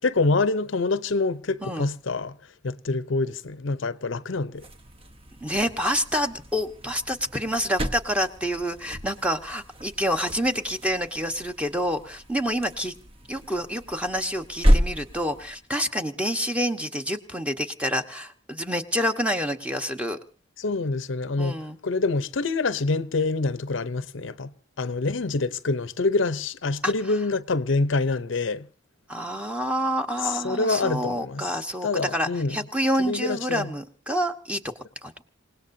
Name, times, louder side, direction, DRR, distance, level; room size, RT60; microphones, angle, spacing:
voice 1, 0.0-2.4 2.6-4.6 20.6-21.6 21.8-28.7 30.2-31.5 31.8-32.6 33.0-33.7, left 3 dB, 70° left, 0.7 m, -26 dB
sound 1, 4.5-15.7, equal, 30° right, 1.1 m, -30 dB
voice 2, 5.4-12.9 13.3-20.2 21.4-21.8 26.8-26.9 29.1-34.7 35.0-35.1, equal, 5° right, 1.2 m, -28 dB
28.0 x 18.0 x 2.7 m
head